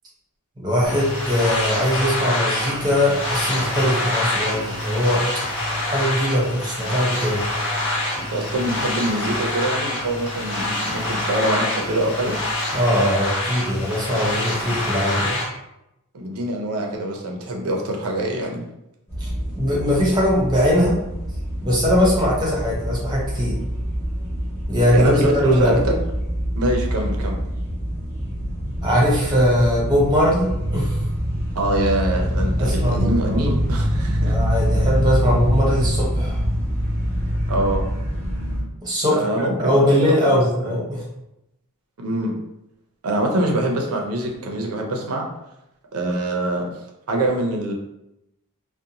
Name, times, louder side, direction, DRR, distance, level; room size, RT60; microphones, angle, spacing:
voice 1, 0.6-5.2 5.8-7.5 12.7-15.4 19.2-19.3 19.5-21.0 21.6-23.6 24.7-25.2 25.4-25.8 28.8-31.0 32.6-33.4 34.2-36.4 38.8-41.0, equal, 20° right, -5 dB, 0.7 m, -21 dB
sound 1, 0.9-15.4, left 1 dB, 60° left, 1.0 m, -26 dB
voice 2, 8.2-12.4 16.1-18.6 24.9-26.0 26.6-27.4 31.6-34.4 37.5-37.8 39.1-40.4 42.0-42.3 43.0-45.3 45.9-46.7 47.1-47.7, right 1 dB, 75° right, 1 dB, 0.6 m, -24 dB
sound 2, 19.1-38.6, equal, 10° left, 1.1 m, -25 dB
2.6 x 2.1 x 2.7 m, 0.87 s
head